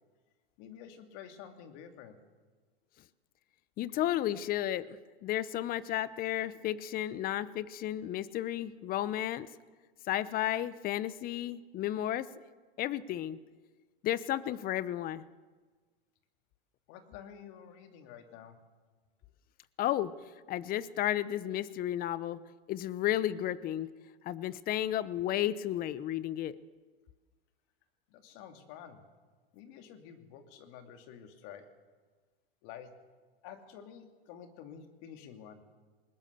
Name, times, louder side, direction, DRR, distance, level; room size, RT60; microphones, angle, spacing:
voice 1, 0.6-2.2 16.9-18.6 28.1-29.0 29.5-31.7 32.6-32.9 33.4-35.6, left 8 dB, 50° left, 6 dB, 2.6 m, -50 dB
voice 2, 3.8-9.5 10.1-12.3 12.8-13.4 14.0-15.2 19.8-20.1 20.5-22.4 22.7-23.9 24.2-26.6, left 12 dB, 30° left, 18 dB, 0.9 m, -33 dB
20.5 x 20.0 x 6.8 m, 1.4 s
hypercardioid pair, 115°, 29 cm